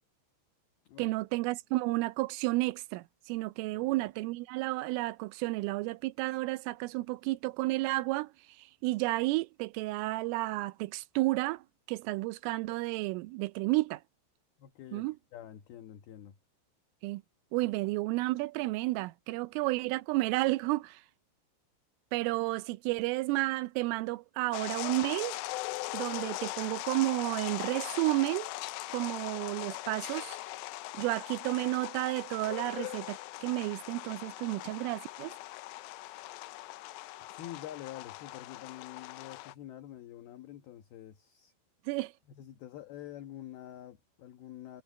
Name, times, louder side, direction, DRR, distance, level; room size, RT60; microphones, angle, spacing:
voice 1, 1.0-8.3 8.8-14.0 14.9-15.2 17.0-17.2 17.5-21.0 22.1-25.4 25.9-28.5 28.9-30.4 30.9-35.3 41.9-42.1, right 20 dB, 85° right, 3.3 m, -32 dB
voice 2, 14.6-15.0 15.3-16.4 37.3-41.5 42.3-44.8, left 12 dB, 65° left, 2.7 m, -47 dB
sound 1, 24.5-39.5, left 18 dB, 80° left, 2.6 m, -40 dB
omnidirectional pair, 5.7 m